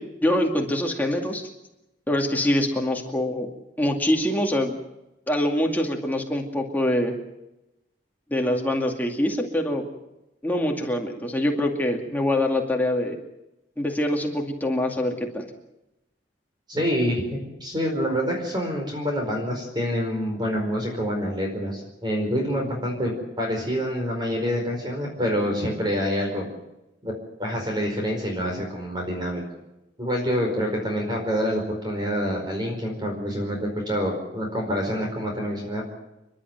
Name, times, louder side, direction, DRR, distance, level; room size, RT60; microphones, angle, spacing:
voice 1, 0.0-1.4 2.1-3.5 3.8-4.8 5.3-7.1 8.3-9.9 10.4-13.2 13.8-15.5, left 1 dB, 10° left, 1 dB, 2.3 m, -24 dB
voice 2, 16.7-26.5 27.0-27.1 27.4-29.4 30.0-35.8, equal, 25° right, 1 dB, 4.8 m, -27 dB
29.5 x 11.5 x 9.2 m, 0.93 s
head